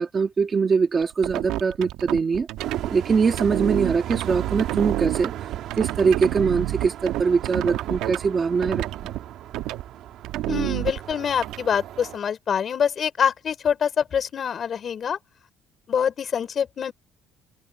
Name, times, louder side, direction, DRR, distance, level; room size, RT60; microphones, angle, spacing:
voice 1, 0.0-2.5 2.9-5.5 5.8-9.1, right 5 dB, 25° right, 1.5 m, -22 dB
sound 1, 1.0-2.9 3.3-8.3 8.6-9.2 9.5-9.8 10.2-11.6, right 15 dB, 85° right, 1.4 m, -28 dB
sound 2, 2.6-12.2, right 12 dB, 55° right, 2.0 m, -37 dB
voice 2, 10.5-15.2 15.9-16.9, left 7 dB, 30° left, 5.5 m, -25 dB
cardioid pair, 175°, 0 cm